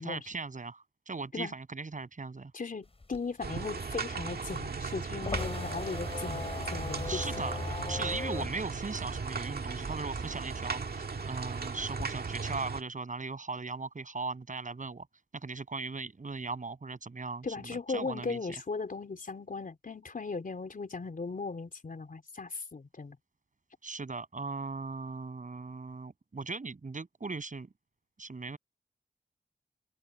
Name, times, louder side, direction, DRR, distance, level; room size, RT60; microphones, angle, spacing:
voice 1, 0.0-2.5 7.0-7.6 7.9-15.1 15.3-18.4 23.8-27.7 28.2-28.6, right 4 dB, 50° right, 7.9 m, -38 dB
voice 2, 2.5-7.2 17.4-23.2, left 4 dB, 55° left, 3.8 m, -37 dB
sound 1, 2.9-10.0 10.3-12.0, left 3 dB, 35° left, 6.7 m, -38 dB
sound 2, 3.4-12.8, right 5 dB, 70° right, 1.8 m, -37 dB
open air
wide cardioid pair, 100°, 17 cm